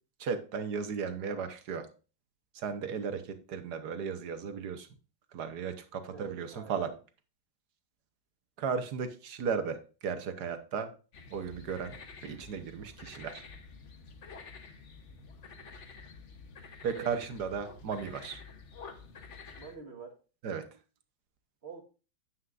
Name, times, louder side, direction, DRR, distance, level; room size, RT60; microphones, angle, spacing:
voice 1, 0.2-1.9 2.5-4.9 5.3-6.9 8.6-10.9 11.3-12.0 12.2-13.4 16.8-18.4 20.4-20.7, right 6 dB, 60° right, 9 dB, 1.5 m, -35 dB
voice 2, 6.1-7.0 16.9-17.1 19.6-20.2 21.6-21.8, right 6 dB, 35° right, 2 dB, 1.7 m, -45 dB
sound 1, 11.1-19.8, left 4 dB, 45° left, 1.1 m, -49 dB
9.5 x 9.5 x 2.5 m, 0.34 s
omnidirectional pair, 2.1 m